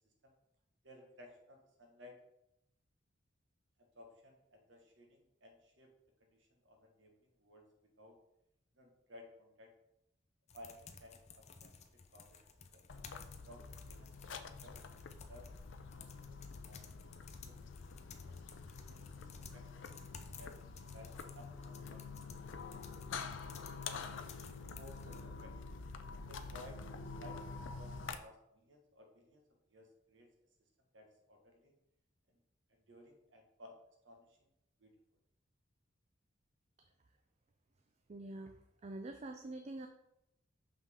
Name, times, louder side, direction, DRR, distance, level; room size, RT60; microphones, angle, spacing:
voice 1, 0.8-2.2 3.8-5.9 6.2-8.2 8.7-9.7 10.5-15.5 16.0-17.1 17.4-18.4 18.9-19.9 20.2-20.6 20.9-22.3 24.7-25.8 26.3-29.4 29.7-30.3 30.9-31.7 32.3-32.4 32.7-33.8 34.0-34.5 34.8-34.9, left 1 dB, 75° right, 2 dB, 1.4 m, -59 dB
sound 1, 10.5-25.2, left 5 dB, 35° left, 0.6 m, -56 dB
sound 2, 12.9-28.2, left 4 dB, 75° left, 0.5 m, -47 dB
voice 2, 38.1-39.9, right 2 dB, 35° right, 6 dB, 0.4 m, -46 dB
5.9 x 5.6 x 3.6 m, 0.83 s
head